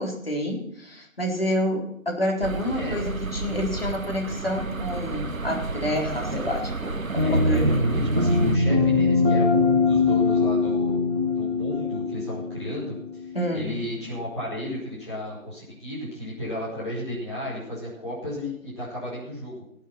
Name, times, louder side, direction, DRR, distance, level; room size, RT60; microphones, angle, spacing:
voice 1, 0.0-7.8 13.3-13.7, left 1 dB, 45° left, 0 dB, 4.0 m, -28 dB
sound 1, 2.4-8.6, right 3 dB, 75° right, 1.2 m, -31 dB
voice 2, 7.2-11.0 11.3-19.5, left 1 dB, 20° left, -9 dB, 5.0 m, -34 dB
sound 2, 7.2-13.7, left 3 dB, 25° right, 1.5 m, -22 dB
19.0 x 8.3 x 5.8 m, 0.76 s
figure-of-eight pair, 175°, 41 cm